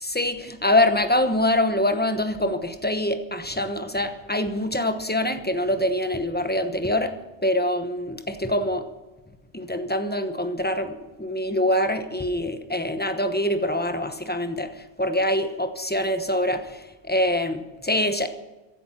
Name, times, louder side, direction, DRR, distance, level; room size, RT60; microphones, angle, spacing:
voice 1, 0.0-7.2 7.4-8.9 9.5-18.3, left 1 dB, 10° left, 8 dB, 0.9 m, -24 dB
15.5 x 11.0 x 5.8 m, 1.1 s
omnidirectional pair, 1.2 m